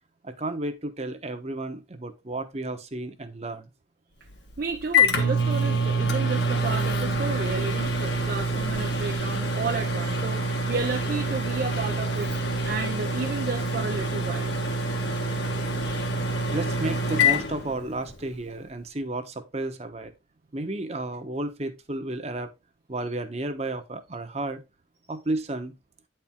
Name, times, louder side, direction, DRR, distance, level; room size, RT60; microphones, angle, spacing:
voice 1, 0.2-3.7 16.5-20.1 20.5-22.5 22.9-24.6 25.1-25.7, right 2 dB, 35° right, 1.0 m, -32 dB
Microwave oven, 4.3-18.3, equal, 60° left, 1.5 m, -26 dB
voice 2, 4.6-14.5, right 4 dB, 50° right, 0.5 m, -32 dB
9.4 x 4.5 x 3.6 m
head